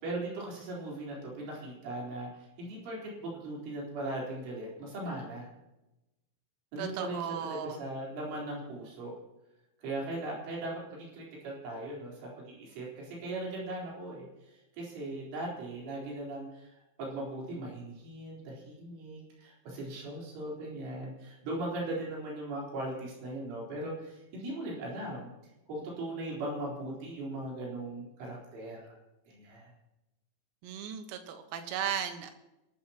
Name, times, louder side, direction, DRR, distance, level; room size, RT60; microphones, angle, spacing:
voice 1, 0.0-5.5 6.7-9.1 9.8-25.3 25.7-29.0 29.3-29.7, right 1 dB, 65° right, -3 dB, 6.5 m, -39 dB
voice 2, 6.8-7.8 30.6-32.3, right 8 dB, 90° right, 7 dB, 4.1 m, -36 dB
26.5 x 13.0 x 3.0 m, 0.99 s
omnidirectional pair, 6.0 m